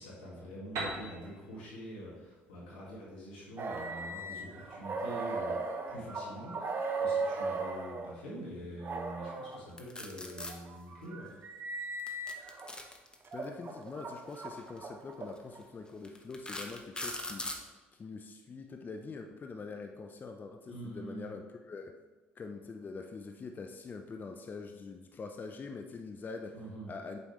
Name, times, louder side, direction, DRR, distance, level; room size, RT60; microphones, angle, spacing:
voice 1, 0.0-5.6 5.9-11.3 20.7-21.3 26.5-26.9, right 1 dB, 90° left, -5 dB, 2.1 m, -45 dB
Piano, 0.8-4.4, right 3 dB, 60° right, 1.6 m, -43 dB
sound 1, 3.6-8.1 8.8-9.6 10.3-12.7 13.2-15.6, right 3 dB, 40° right, 1.0 m, -37 dB
sound 2, 9.8-10.5 12.0-13.4 14.6-14.8 15.4-15.5 16.0-17.6, left 2 dB, 15° left, 1.1 m, -40 dB
voice 2, 13.3-17.5 18.0-22.0 22.4-26.6 26.9-27.2, left 4 dB, 35° left, 5 dB, 0.6 m, -44 dB
8.2 x 5.2 x 3.2 m, 1.2 s
hypercardioid pair, 60°, 6 cm